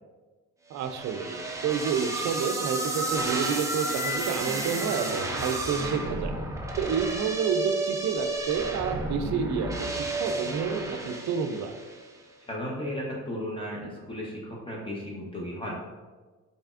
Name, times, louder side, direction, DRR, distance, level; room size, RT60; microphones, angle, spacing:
voice 1, 0.7-6.4 6.8-11.7, right 6 dB, 65° right, 7 dB, 0.5 m, -29 dB
sound 1, 0.8-12.1, right 2 dB, 10° right, 0.5 m, -32 dB
voice 2, 12.5-15.7, equal, 15° left, -4 dB, 0.8 m, -35 dB
4.1 x 3.3 x 2.5 m, 1.3 s
cardioid pair, 90°, 30 cm